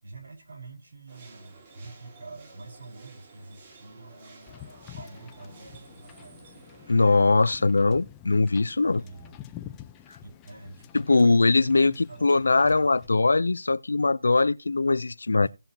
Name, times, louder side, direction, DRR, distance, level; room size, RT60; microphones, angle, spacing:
voice 1, 0.0-4.5 4.9-6.6 7.3-7.8 9.0-9.4 10.0-12.7 15.4-15.5, right 3 dB, 65° right, 4.7 m, -47 dB
sound 1, 1.1-7.2, right 3 dB, 30° right, 3.1 m, -52 dB
Wind / Boat Water vehicle, 4.5-13.1, left 12 dB, 10° left, 0.6 m, -48 dB
voice 2, 6.9-9.0 10.9-15.5, left 3 dB, 85° left, 0.6 m, -21 dB
18.0 x 6.8 x 2.9 m
hypercardioid pair, 170°, 0 cm